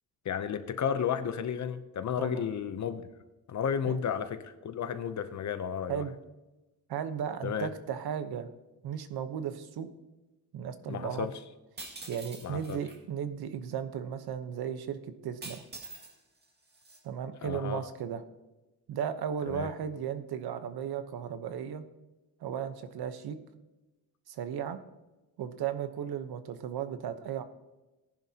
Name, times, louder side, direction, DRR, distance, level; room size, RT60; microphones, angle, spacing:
voice 1, 0.2-3.0 3.5-6.0 7.4-7.7 10.9-11.3 12.4-12.8 17.4-17.9 19.5-19.7, left 8 dB, 50° left, 10 dB, 0.7 m, -32 dB
voice 2, 6.9-8.5 8.8-9.9 10.5-11.3 12.1-15.6 17.0-18.2 18.9-21.8 22.4-23.4 24.3-24.8 25.4-27.4, right 8 dB, 75° right, 10 dB, 1.0 m, -35 dB
sound 1, 11.8-13.0 15.4-16.1 16.4-17.0, right 2 dB, 25° right, 2.1 m, -45 dB
18.5 x 10.5 x 2.9 m, 1.1 s
cardioid pair, 150°, 38 cm